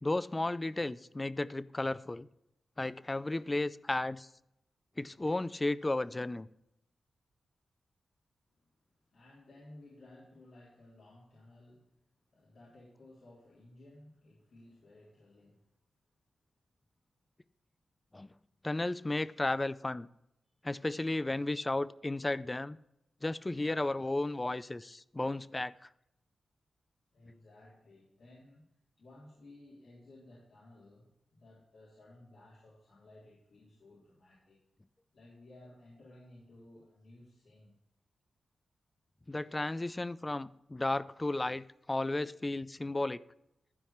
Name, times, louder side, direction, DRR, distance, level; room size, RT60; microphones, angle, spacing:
voice 1, 0.0-2.3 2.8-4.3 5.0-6.5 18.1-18.3 18.6-20.1 20.6-22.8 23.2-25.7 39.3-43.2, left 2 dB, 25° left, 0.4 m, -34 dB
voice 2, 9.1-12.0 12.3-15.7 27.1-28.6 29.0-34.6 35.1-37.7, left 1 dB, 70° left, 3.6 m, -57 dB
12.0 x 4.9 x 5.8 m
cardioid pair, 75°, 0 cm